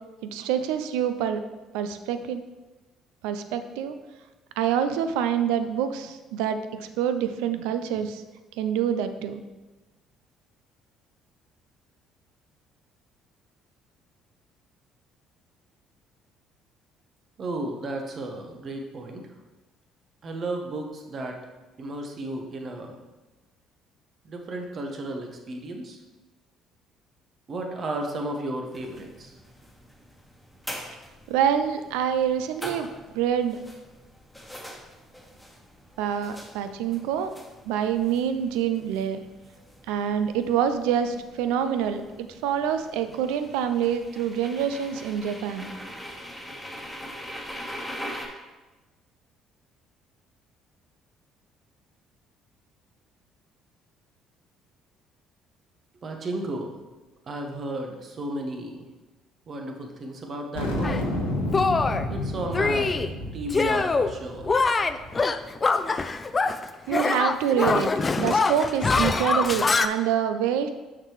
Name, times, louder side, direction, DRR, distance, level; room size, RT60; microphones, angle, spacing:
voice 1, 0.2-1.4 1.7-2.4 3.2-4.0 4.6-8.2 8.6-9.4 31.3-32.9 33.1-33.6 36.0-37.3 37.7-39.2 39.9-45.7 66.9-67.9 68.2-70.7, right 9 dB, 75° right, 9 dB, 0.4 m, -26 dB
voice 2, 17.4-19.4 20.2-21.4 21.8-23.0 24.2-26.0 27.5-29.4 56.0-56.8 57.3-58.8 59.5-60.9 62.1-63.0 63.3-64.6, right 1 dB, 45° right, 2 dB, 1.1 m, -33 dB
sound 1, 28.7-48.3, equal, ahead, 1.5 m, -43 dB
sound 2, 60.5-65.2, left 1 dB, 90° left, 0.9 m, -31 dB
Shatter, 60.8-61.0 61.5-62.1 62.5-63.1 63.5-64.1 64.4-66.6 66.9-69.9, left 4 dB, 30° left, 0.4 m, -24 dB
6.3 x 5.9 x 3.2 m, 1.2 s
hypercardioid pair, 55°, 0 cm